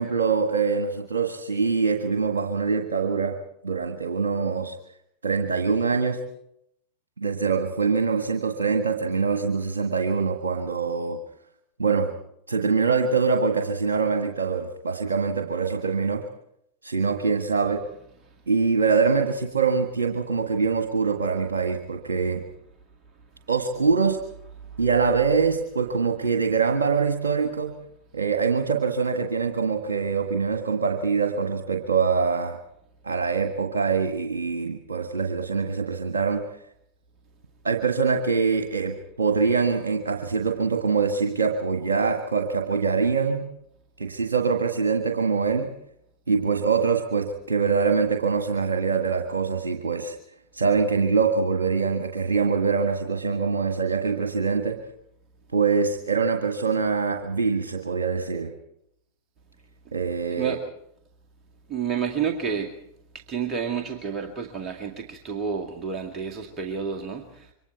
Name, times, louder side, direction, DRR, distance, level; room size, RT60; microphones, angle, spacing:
voice 1, 0.0-3.4 3.6-4.8 5.2-6.2 7.2-11.2 11.8-12.1 12.5-16.2 16.8-17.8 18.5-22.4 23.5-24.2 24.8-27.8 28.1-32.6 33.0-36.4 37.6-43.5 44.0-45.7 46.3-50.2 50.5-54.8 55.5-58.5 59.9-60.6, right 5 dB, 70° right, 6 dB, 1.6 m, -24 dB
voice 2, 61.7-62.7 63.1-67.5, right 6 dB, 25° right, 2 dB, 2.0 m, -30 dB
27.0 x 24.0 x 4.6 m, 0.75 s
figure-of-eight pair, 90°, 0 cm